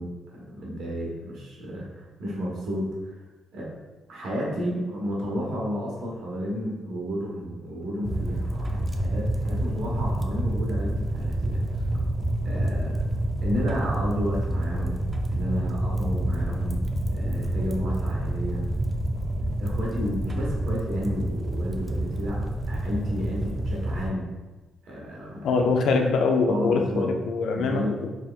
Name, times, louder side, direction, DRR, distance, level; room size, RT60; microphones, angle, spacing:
voice 1, 0.0-3.1 3.5-3.7 4.1-11.7 12.4-13.0 13.4-15.0 15.3-16.8 17.1-18.7 19.6-24.3 24.8-25.6 26.5-27.1 27.5-28.0, equal, 80° right, -3 dB, 1.1 m, -32 dB
sound 1, 8.0-24.1, right 1 dB, 20° right, 0.3 m, -28 dB
voice 2, 25.4-28.1, left 4 dB, 70° left, 4 dB, 0.4 m, -23 dB
4.3 x 3.3 x 2.3 m, 1.2 s
cardioid pair, 160°, 0 cm